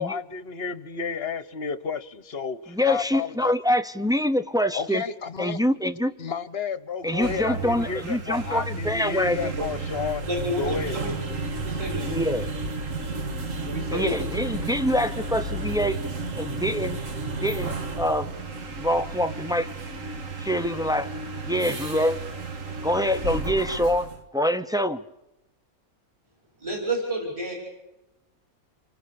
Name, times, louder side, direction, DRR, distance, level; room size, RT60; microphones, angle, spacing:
voice 1, 0.0-3.5 4.7-5.6 6.2-10.2 10.6-11.0, left 5 dB, 45° left, 15 dB, 1.2 m, -31 dB
voice 2, 2.7-5.0 5.4-6.1 7.0-9.5 12.1-12.5 13.9-16.0 16.4-17.0 17.3-18.3 18.7-19.7 20.4-21.1 21.4-22.2 22.8-24.1 24.3-25.0, equal, 5° right, 9 dB, 0.3 m, -25 dB
sound 1, 7.1-24.2, right 3 dB, 60° right, 2.1 m, -32 dB
voice 3, 10.3-10.6 10.9-11.1 11.6-12.1 13.6-14.2 26.6-27.5, right 1 dB, 20° right, 0 dB, 5.8 m, -29 dB
28.5 x 23.5 x 6.9 m, 0.96 s
omnidirectional pair, 1.5 m